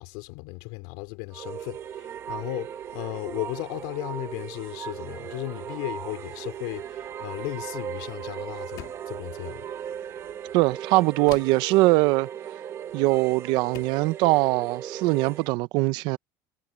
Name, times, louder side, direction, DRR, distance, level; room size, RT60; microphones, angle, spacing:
voice 1, 0.0-9.7, left 25 dB, 85° left, 3.4 m, -35 dB
sound 1, 1.3-15.5, right 9 dB, 35° right, 1.0 m, -37 dB
sound 2, 8.8-9.2 11.3-11.7 13.0-13.2 13.7-14.1, left 15 dB, 55° left, 2.1 m, -43 dB
voice 2, 10.5-12.3 12.9-16.2, right 21 dB, 70° right, 0.7 m, -22 dB
cardioid pair, 145°, 8 cm